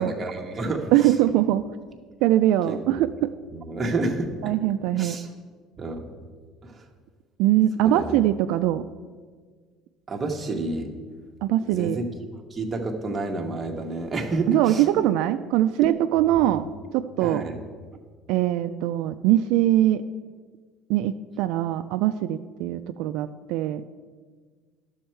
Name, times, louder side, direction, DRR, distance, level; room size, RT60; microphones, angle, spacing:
voice 1, 0.0-0.9 2.7-2.8 3.5-4.5 5.0-5.3 5.8-6.1 6.6-6.8 7.8-8.2 10.1-10.9 11.7-12.1 12.5-14.8 16.2-16.4 17.2-17.5, right 2 dB, 20° right, 2 dB, 1.0 m, -29 dB
voice 2, 0.9-1.7 2.2-3.3 4.4-5.2 7.4-8.9 11.4-12.0 14.5-16.7 16.9-17.4 18.3-20.0 20.9-23.8, right 13 dB, 70° right, 9 dB, 0.3 m, -22 dB
11.5 x 6.3 x 4.5 m, 1.5 s
cardioid pair, 150°, 0 cm